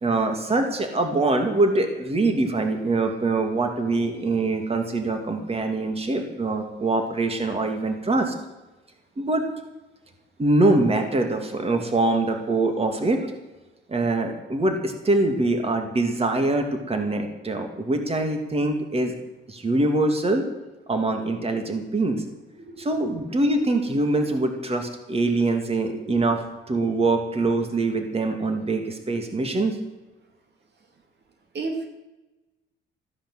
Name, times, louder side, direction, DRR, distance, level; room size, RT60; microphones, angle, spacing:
voice 1, 0.0-8.3 9.2-9.4 10.4-13.3 13.9-19.1 19.5-20.4 20.9-22.2 22.8-26.4 26.7-29.8, right 2 dB, 30° right, 5 dB, 2.7 m, -23 dB
voice 2, 22.6-22.9 25.8-26.2 31.5-31.9, right 3 dB, 60° right, 4 dB, 2.6 m, -33 dB
15.5 x 10.5 x 7.8 m, 1.1 s
cardioid pair, 90°, 20 cm